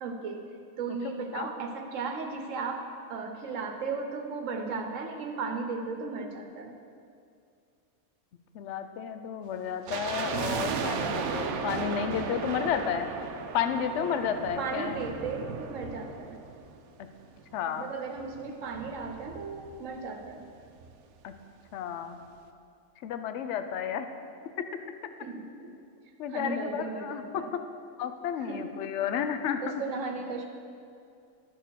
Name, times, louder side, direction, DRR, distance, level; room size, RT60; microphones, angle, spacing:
voice 1, 0.0-0.4 0.8-2.8 3.1-6.7 14.6-16.4 17.7-20.4 25.2-25.7 26.3-27.5 28.4-28.7 29.6-30.5, right 4 dB, 65° right, 4 dB, 1.2 m, -35 dB
voice 2, 0.9-1.5 8.5-13.1 13.5-15.0 17.5-17.9 21.2-21.3 21.7-22.2 23.0-24.1 24.6-24.7 26.2-27.6 28.0-29.8, left 8 dB, 65° left, 8 dB, 0.8 m, -32 dB
sound 1, 9.9-17.1 17.4-17.5 18.2-20.0 20.2-20.3 20.6-20.9 21.3-21.4, right 6 dB, 90° right, 1.1 m, -35 dB
12.0 x 4.5 x 6.2 m, 2.4 s
omnidirectional pair, 1.5 m